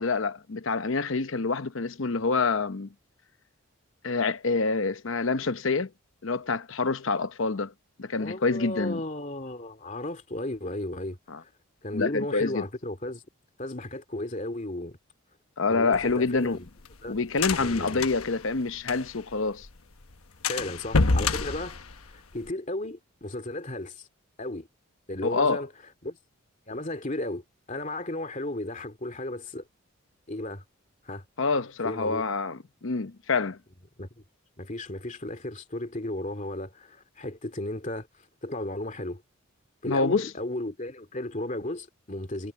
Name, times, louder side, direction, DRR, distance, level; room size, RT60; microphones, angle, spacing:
voice 1, 0.0-2.9 4.0-5.9 6.2-7.7 8.0-9.0 11.3-11.4 11.9-12.6 15.6-16.6 17.1-19.7 25.2-25.6 31.4-33.6 39.9-40.3, left 4 dB, 65° left, 0.8 m, -27 dB
voice 2, 8.2-11.5 11.8-13.2 13.6-15.0 15.7-16.7 17.0-17.2 17.6-18.1 20.5-21.8 22.1-24.1 24.4-24.7 25.1-25.7 26.0-26.2 26.7-29.7 30.3-30.6 31.0-31.2 31.8-32.2 34.0-34.2 34.6-38.1 38.4-39.2 39.8-42.5, left 1 dB, 35° left, 2.6 m, -34 dB
sound 1, 15.9-19.3 19.6-19.7 20.0-20.1 20.4-22.5, left 3 dB, 85° left, 1.1 m, -28 dB
head